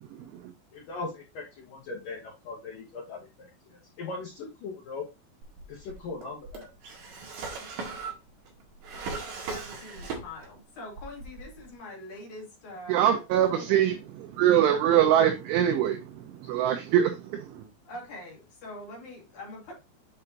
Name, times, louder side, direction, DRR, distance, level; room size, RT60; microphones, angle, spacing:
voice 1, 0.7-5.1 5.7-6.7, left 3 dB, 80° left, 1.9 m, -39 dB
Drawer open or close, 5.4-10.6 10.9-11.7, right 4 dB, 55° right, 2.6 m, -39 dB
voice 2, 9.5-13.8 17.8-19.7, left 1 dB, 50° left, 2.7 m, -44 dB
voice 3, 12.9-17.7, right 10 dB, 80° right, 3.0 m, -24 dB
7.8 x 5.5 x 2.9 m
omnidirectional pair, 6.0 m